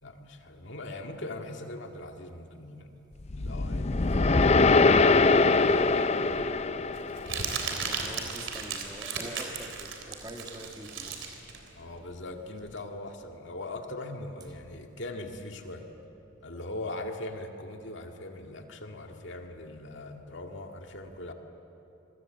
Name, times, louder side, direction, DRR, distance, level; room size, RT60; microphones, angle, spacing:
voice 1, 0.0-2.9 3.3-5.3 11.8-15.9 16.4-21.3, left 2 dB, 60° left, 4 dB, 2.0 m, -40 dB
sound 1, 3.3-7.6, left 3 dB, 30° left, 0.5 m, -23 dB
Crumpling crinkling, 5.7-12.8, right 5 dB, 65° right, 3.4 m, -36 dB
voice 2, 7.8-11.4, right 1 dB, 20° right, 3 dB, 1.7 m, -44 dB
26.5 x 23.5 x 7.8 m, 3.0 s
head